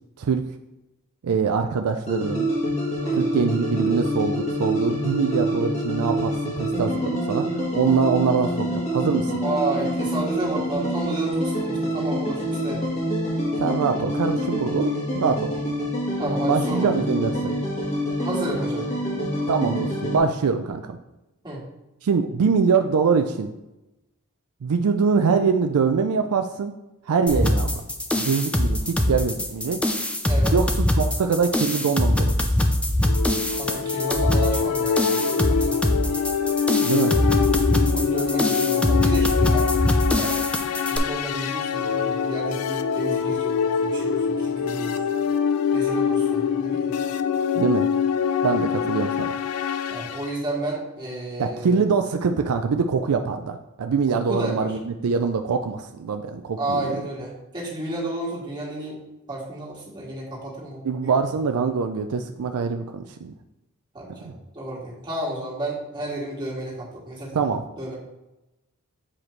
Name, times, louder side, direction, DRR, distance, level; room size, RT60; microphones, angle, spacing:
voice 1, 1.2-2.5 3.1-7.5 7.7-9.4 13.6-15.5 16.5-17.5 19.5-21.0 22.0-23.5 24.6-26.7 27.1-27.8 28.1-29.8 30.5-30.7 31.0-32.5 36.8-37.4 47.6-47.9 48.4-49.3 51.4-56.9 60.8-63.3 64.2-64.3 67.3-67.6, right 5 dB, 75° right, 6 dB, 0.4 m, -23 dB
sound 1, 2.1-20.2, equal, 30° left, 1.4 m, -26 dB
voice 2, 9.4-12.8 16.2-17.0 18.2-18.9 21.4-21.7 27.3-27.5 30.2-30.5 33.5-36.2 37.9-39.7 40.0-40.3 40.8-45.0 45.7-46.9 49.9-51.8 54.1-54.8 56.6-59.0 59.3-61.3 63.9-67.4 67.8-67.9, right 2 dB, 20° right, -6 dB, 1.9 m, -32 dB
sound 2, 27.3-41.0, left 1 dB, 5° left, 0.5 m, -23 dB
sound 3, 33.0-50.3, left 7 dB, 80° left, 0.4 m, -24 dB
7.2 x 5.0 x 3.1 m, 0.95 s
head